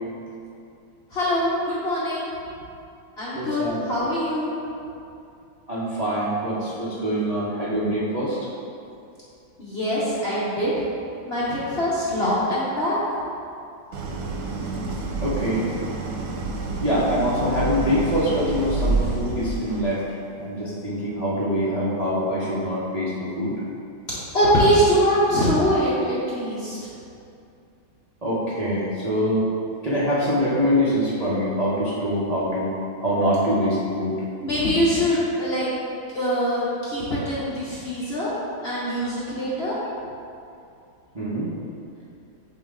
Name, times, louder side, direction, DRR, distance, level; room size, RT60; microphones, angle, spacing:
voice 1, 1.1-2.3 3.2-4.5 9.6-10.7 11.2-12.9 24.3-26.8 34.4-35.7 36.1-38.3 38.6-39.8, equal, 50° left, -8 dB, 0.8 m, -23 dB
voice 2, 3.3-3.8 5.7-8.4 15.2-15.7 16.8-20.0 20.4-23.1 23.4-23.5 28.2-29.5 29.8-32.7 33.0-34.2 41.1-41.5, equal, 60° right, -9 dB, 0.4 m, -24 dB
Idling, 13.9-20.0, right 3 dB, 80° right, 1.5 m, -28 dB
8.9 x 3.1 x 3.6 m, 2.6 s
omnidirectional pair, 2.2 m